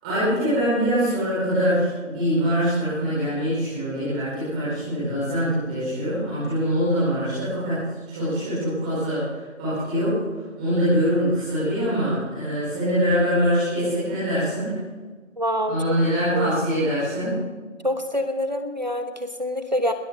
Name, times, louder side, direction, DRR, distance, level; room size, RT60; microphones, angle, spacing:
voice 1, 0.0-7.8 8.1-9.2 9.6-10.2 10.6-14.7 15.7-17.3, equal, 5° right, -11 dB, 4.3 m, -23 dB
voice 2, 15.4-15.8 16.3-16.5 17.8-19.9, equal, 35° right, 8 dB, 1.1 m, -26 dB
21.0 x 16.5 x 3.5 m, 1.4 s
figure-of-eight pair, 175°, 39 cm